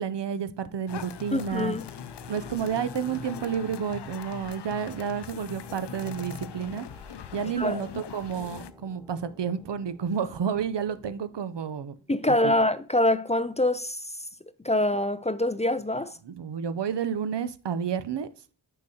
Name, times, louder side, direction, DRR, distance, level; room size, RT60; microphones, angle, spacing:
voice 1, 0.0-1.7 2.3-6.9 7.3-11.9 12.3-12.5 16.2-18.3, right 7 dB, 80° right, 0.6 m, -30 dB
sound 1, 0.9-8.7, left 9 dB, 75° left, 0.5 m, -41 dB
voice 2, 1.3-1.8 7.6-7.8 12.1-14.0 14.6-16.1, left 1 dB, 15° left, 0.4 m, -25 dB
sound 2, 1.6-12.9, left 1 dB, 5° right, 0.8 m, -51 dB
6.3 x 5.7 x 2.8 m
wide cardioid pair, 45°, 42 cm